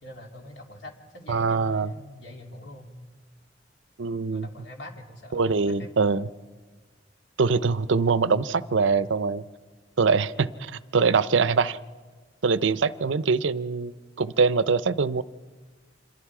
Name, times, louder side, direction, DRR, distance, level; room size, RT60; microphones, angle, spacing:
voice 1, 0.0-2.9 4.3-5.9, left 1 dB, 70° left, 1 dB, 3.1 m, -44 dB
voice 2, 1.3-1.9 4.0-4.5 5.3-6.3 7.4-9.4 10.0-11.8 12.4-13.9 14.2-15.2, right 4 dB, 80° right, 16 dB, 0.6 m, -23 dB
26.5 x 22.0 x 4.9 m, 1.4 s
head